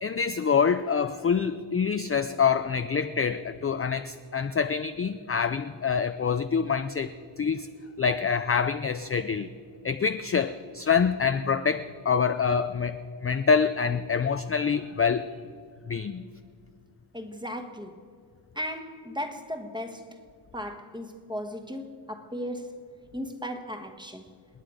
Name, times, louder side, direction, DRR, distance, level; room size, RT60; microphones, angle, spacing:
voice 1, 0.0-7.1 7.4-7.7 8.0-9.5 9.8-13.0 13.2-15.3 15.9-16.2, left 6 dB, 30° left, 0.4 m, -26 dB
voice 2, 17.1-18.0 18.5-20.2 20.5-22.8 23.1-24.3, equal, 10° right, 1.2 m, -36 dB
28.5 x 9.9 x 5.1 m
wide cardioid pair, 140°, 49 cm